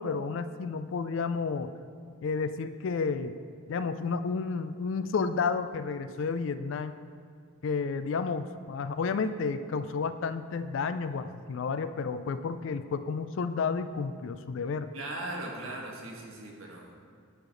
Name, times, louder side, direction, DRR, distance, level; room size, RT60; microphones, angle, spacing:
voice 1, 0.0-1.7 2.2-3.4 3.7-6.9 7.6-14.9, left 5 dB, 60° left, 12 dB, 0.3 m, -31 dB
voice 2, 14.9-17.0, right 2 dB, 75° right, 0 dB, 1.3 m, -39 dB
9.8 x 5.8 x 3.9 m, 2.1 s
head